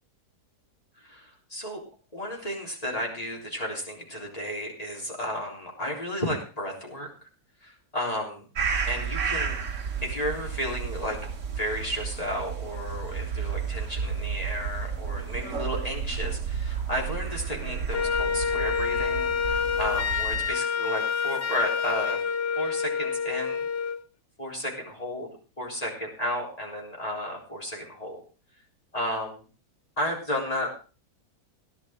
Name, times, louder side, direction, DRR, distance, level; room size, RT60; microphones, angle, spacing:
voice 1, 1.0-1.8 2.1-7.3 7.6-8.5 8.8-9.6 10.0-11.2 11.6-22.2 22.6-23.7 24.4-25.3 25.6-28.2 28.9-29.4 30.0-30.7, equal, 25° left, -1 dB, 3.8 m, -33 dB
sound 1, 8.6-20.5, right 6 dB, 50° right, 1.6 m, -32 dB
Wind instrument woodwind instrument, 17.9-24.0, left 6 dB, 50° left, 0.8 m, -28 dB
17.5 x 11.0 x 3.7 m, 0.36 s
omnidirectional pair, 1.7 m